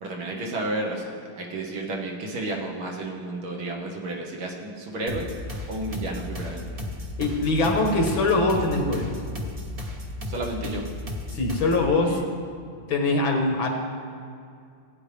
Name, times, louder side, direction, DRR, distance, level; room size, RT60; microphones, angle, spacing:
voice 1, 0.0-5.3 5.7-6.7 10.3-10.8 12.1-12.2, right 2 dB, 85° right, -1 dB, 2.1 m, -32 dB
sound 1, 5.1-11.9, left 1 dB, 30° right, 0.6 m, -34 dB
voice 2, 7.2-9.1 11.3-12.2 12.9-13.7, left 2 dB, 75° left, 2 dB, 2.1 m, -22 dB
16.0 x 8.9 x 3.4 m, 2.3 s
omnidirectional pair, 2.2 m